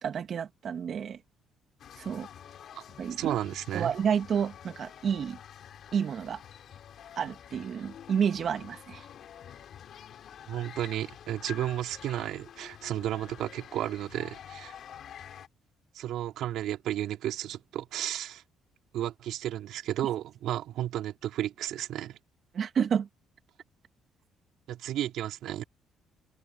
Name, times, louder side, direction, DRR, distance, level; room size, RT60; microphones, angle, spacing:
voice 1, 0.0-1.2 2.0-2.3 3.0-3.4 3.7-5.4 5.9-6.4 7.2-9.0 22.5-23.1, right 7 dB, 50° right, 2.7 m, -30 dB
sound 1, 1.8-15.5, left 9 dB, 60° left, 4.2 m, -48 dB
voice 2, 3.2-3.9 10.5-14.7 15.9-18.4 18.9-22.2 24.7-25.6, right 12 dB, 75° right, 5.0 m, -33 dB
cardioid pair, 100°, 0 cm